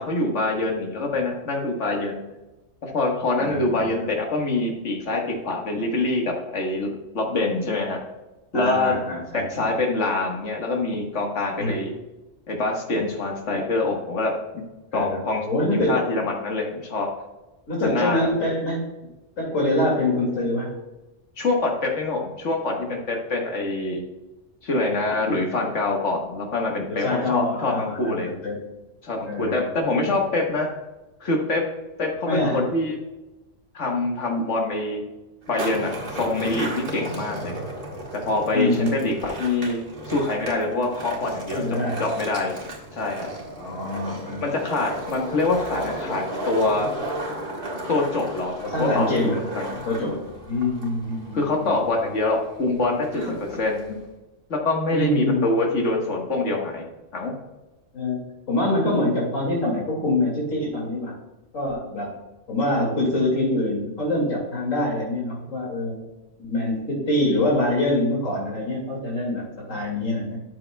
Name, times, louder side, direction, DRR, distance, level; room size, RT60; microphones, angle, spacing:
voice 1, 0.0-2.2 2.8-8.0 8.5-8.9 9.3-11.9 12.5-14.6 14.9-15.5 15.7-17.1 17.8-18.3 21.4-24.0 24.6-28.3 29.0-30.7 31.2-31.6 32.0-33.0 33.7-35.0 35.5-37.5 38.1-39.8 40.1-42.5 42.9-43.3 44.4-46.9 47.9-49.8 50.0-50.2 51.3-53.2 53.6-53.8 54.5-56.9 57.1-57.3, left 2 dB, 65° left, 1 dB, 1.8 m, -25 dB
voice 2, 3.4-4.1 8.5-9.7 11.6-11.8 14.9-16.1 17.7-18.8 19.4-20.7 26.9-28.6 29.3-30.0 32.2-32.6 38.5-39.1 41.0-41.1 41.5-42.1 43.6-44.6 48.6-49.4 49.8-51.8 54.9-55.5 57.9-61.2 61.5-62.1 62.5-66.0 66.4-70.4, left 1 dB, 85° left, -2 dB, 2.7 m, -25 dB
Skateboard, 35.4-54.1, right 1 dB, 45° right, 1.7 m, -35 dB
12.5 x 7.6 x 2.3 m, 1.0 s
omnidirectional pair, 1.3 m